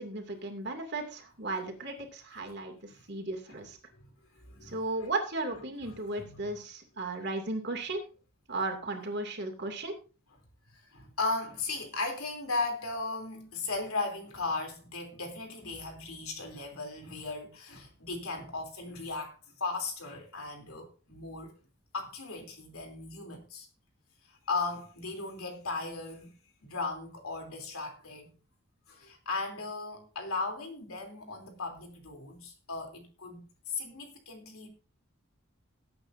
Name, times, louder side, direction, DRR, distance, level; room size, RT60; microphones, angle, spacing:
voice 1, 0.0-3.8 4.6-8.0 8.5-10.0, right 2 dB, 50° right, 2.5 m, -35 dB
voice 2, 4.4-5.1 6.2-6.5 10.7-21.5 21.9-23.7 24.5-26.3 26.6-28.3 28.9-34.7, left 3 dB, 85° left, 3.2 m, -37 dB
19.0 x 8.7 x 2.6 m
head